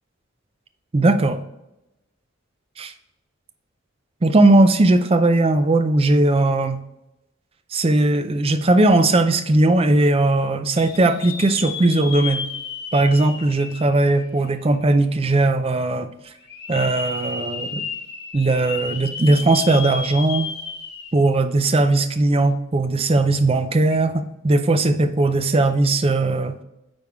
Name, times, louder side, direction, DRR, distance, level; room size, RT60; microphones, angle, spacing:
voice 1, 0.9-1.4 2.8-2.9 4.2-6.8 7.7-12.4 12.9-16.1 16.7-17.9 18.3-20.5 21.1-26.6, right 2 dB, 25° right, 10 dB, 0.4 m, -18 dB
sound 1, 10.8-14.7 15.2-15.3 16.4-21.4 21.7-21.8 23.8-24.0, left 5 dB, 50° left, 0.9 m, -32 dB
9.2 x 3.5 x 3.4 m, 0.91 s
head